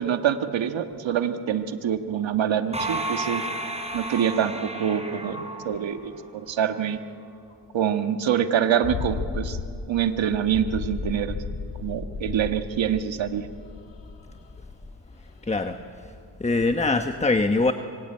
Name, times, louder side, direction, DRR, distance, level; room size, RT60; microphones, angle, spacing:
voice 1, 0.0-3.4 3.9-7.0 7.7-9.6 9.9-11.4 11.8-13.4, right 9 dB, 80° right, 8 dB, 1.5 m, -25 dB
sound 1, 2.7-6.4, right 1 dB, 15° right, 4.5 m, -32 dB
sound 2, 8.8-15.2 15.6-15.8, left 5 dB, 70° left, 2.9 m, -34 dB
voice 2, 15.4-16.1 16.4-17.7, left 3 dB, 15° left, 8 dB, 1.1 m, -23 dB
25.5 x 24.0 x 8.9 m, 2.4 s
cardioid pair, 85°, 44 cm